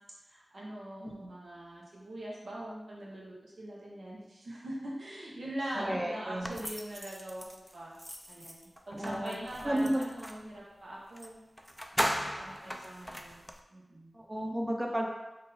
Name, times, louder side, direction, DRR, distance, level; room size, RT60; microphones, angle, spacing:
voice 1, 0.3-8.0 8.3-11.4 11.9-14.2, right 1 dB, 70° right, -5 dB, 1.0 m, -42 dB
voice 2, 5.7-6.6 8.9-9.4 9.6-10.0 14.1-15.1, right 1 dB, 20° right, 0 dB, 0.8 m, -32 dB
sound 1, 6.4-10.5 11.2-11.3 11.6-13.6, equal, 5° left, 0.4 m, -38 dB
3.7 x 2.6 x 4.2 m, 1.0 s
wide cardioid pair, 55°, 0 cm